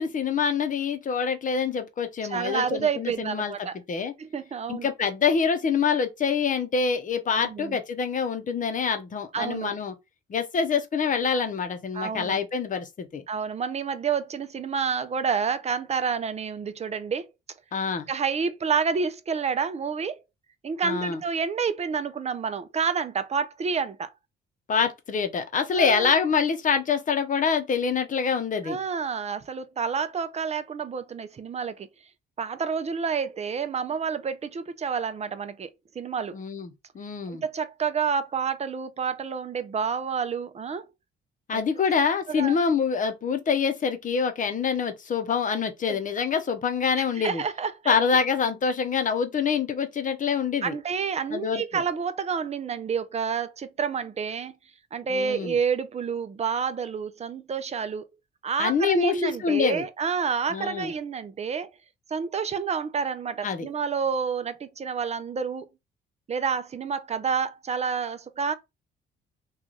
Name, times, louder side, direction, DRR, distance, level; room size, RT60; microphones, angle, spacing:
voice 1, 0.0-4.1 4.7-9.9 10.3-13.2 17.7-18.1 20.8-21.2 24.7-28.8 36.3-37.4 41.5-47.4 47.9-50.8 51.3-51.6 55.1-55.6 58.6-59.8 60.5-60.9 63.4-63.7, left 6 dB, 40° left, 0.8 m, -26 dB
voice 2, 2.2-3.7 4.2-4.9 7.4-7.8 9.3-9.8 11.9-12.4 13.3-17.3 18.1-20.2 20.6-24.1 25.7-26.1 28.6-31.9 32.4-35.7 36.0-36.3 37.3-40.8 41.5-41.6 42.3-42.6 45.9-46.0 47.2-47.9 50.6-54.5 54.9-58.1 58.4-61.7 62.1-65.7 66.3-68.5, right 6 dB, 35° right, 0.5 m, -29 dB
3.1 x 2.4 x 3.8 m
cardioid pair, 90°, 20 cm